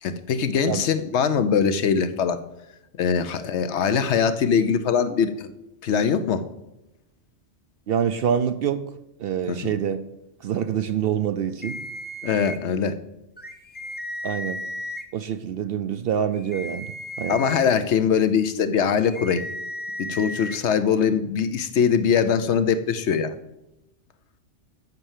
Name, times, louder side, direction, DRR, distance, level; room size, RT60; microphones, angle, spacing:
voice 1, 0.0-2.4 2.9-5.5 5.8-6.5 9.5-9.7 12.2-13.0 17.3-19.4 20.0-23.3, left 6 dB, 70° left, 11 dB, 0.9 m, -22 dB
voice 2, 7.9-8.8 9.2-10.0 10.4-11.8 14.2-14.6 15.1-17.4, right 8 dB, 65° right, 11 dB, 0.6 m, -26 dB
sound 1, 11.6-12.6 13.4-15.0 16.3-17.6 19.0-20.6, left 1 dB, 10° left, 0.6 m, -35 dB
8.1 x 5.5 x 7.3 m, 0.90 s
omnidirectional pair, 1.3 m